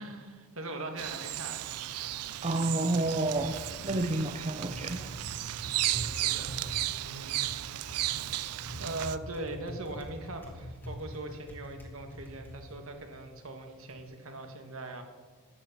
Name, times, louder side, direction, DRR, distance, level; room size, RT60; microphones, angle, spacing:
voice 1, 0.0-1.7 5.7-6.6 6.9-8.1 8.8-15.0, right 2 dB, 65° right, 5 dB, 2.0 m, -41 dB
Bird vocalization bird call bird song, 1.0-9.2, right 14 dB, 90° right, 0.5 m, -34 dB
Typing, 1.6-14.0, equal, 10° left, 2.1 m, -46 dB
voice 2, 2.4-5.1, right 2 dB, 30° right, 7 dB, 0.7 m, -30 dB
13.0 x 8.7 x 9.1 m, 1.5 s
head